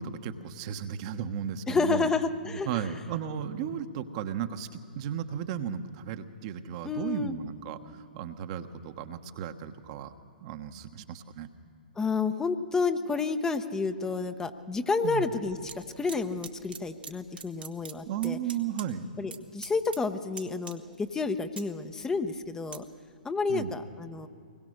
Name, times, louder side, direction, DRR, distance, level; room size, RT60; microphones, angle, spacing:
voice 1, 0.0-2.1 2.5-10.1 10.4-11.5 15.0-15.3 18.1-19.1 23.5-23.7, right 8 dB, 40° right, 8 dB, 1.2 m, -35 dB
voice 2, 1.7-2.9 6.8-7.4 12.0-18.4 19.2-22.9 23.2-24.3, left 4 dB, 10° left, 8 dB, 0.9 m, -30 dB
sound 1, 15.4-15.8 16.1-17.1 17.4-18.9 19.1-19.4 19.6-20.1 20.3-21.0 21.4-22.8 23.3-23.4, right 5 dB, 80° right, 2.0 m, -43 dB
24.0 x 21.0 x 6.6 m, 2.3 s
figure-of-eight pair, 120°, 5 cm